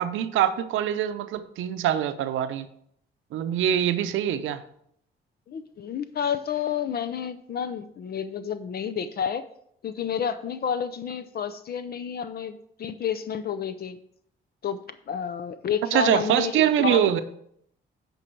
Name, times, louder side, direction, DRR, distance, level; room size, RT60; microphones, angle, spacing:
voice 1, 0.0-2.7 3.3-4.6 15.9-17.2, right 10 dB, 85° right, 11 dB, 0.6 m, -24 dB
voice 2, 5.5-9.4 9.8-14.0 14.6-14.8 15.1-17.1, left 8 dB, 50° left, 12 dB, 0.5 m, -30 dB
9.1 x 5.3 x 4.5 m, 0.70 s
cardioid pair, 90°, 20 cm